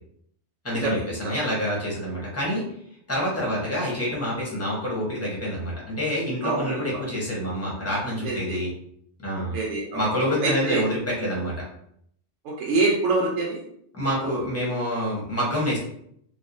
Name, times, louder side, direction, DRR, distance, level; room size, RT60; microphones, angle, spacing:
voice 1, 0.6-2.6 3.1-8.7 9.2-9.6 9.9-11.5 13.9-15.8, equal, 15° left, -5 dB, 0.8 m, -27 dB
voice 2, 6.4-6.8 8.2-8.6 9.5-10.1 10.4-10.8 12.5-13.6, right 3 dB, 90° right, -2 dB, 0.9 m, -25 dB
3.0 x 2.1 x 2.5 m, 0.69 s
omnidirectional pair, 1.2 m